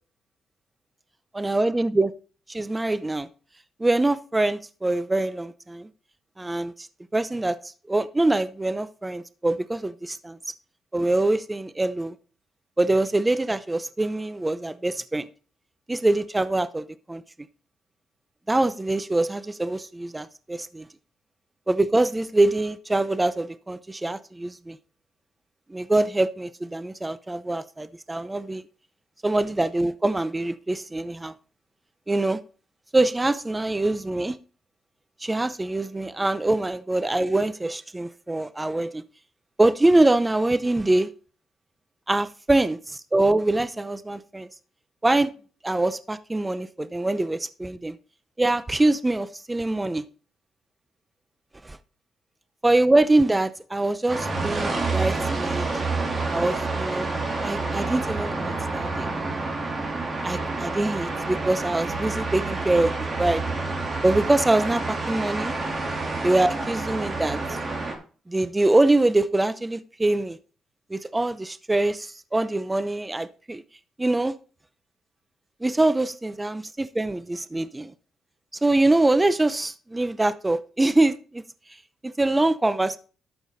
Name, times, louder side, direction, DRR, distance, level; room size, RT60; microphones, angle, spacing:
voice 1, 1.4-2.1 2.5-3.3 3.8-5.9 6.4-6.9 7.1-10.4 10.9-12.2 12.8-15.3 15.9-17.2 18.5-20.9 21.7-24.8 25.7-28.6 29.2-31.3 32.1-32.4 32.9-34.4 35.2-39.0 39.6-41.1 42.1-44.5 45.0-45.3 45.6-47.9 48.4-50.0 51.6-51.8 52.6-55.7 56.3-57.1 57.4-59.1 60.2-63.4 64.0-65.5 66.2-67.6 68.3-70.4 70.9-73.6 74.0-74.3 75.6-77.9 78.6-81.4 82.0-83.0, right 2 dB, 15° right, 0.7 m, -24 dB
sound 1, 54.1-67.9, right 3 dB, 35° right, 3.4 m, -28 dB
12.0 x 6.9 x 4.0 m
cardioid pair, 90°, 0 cm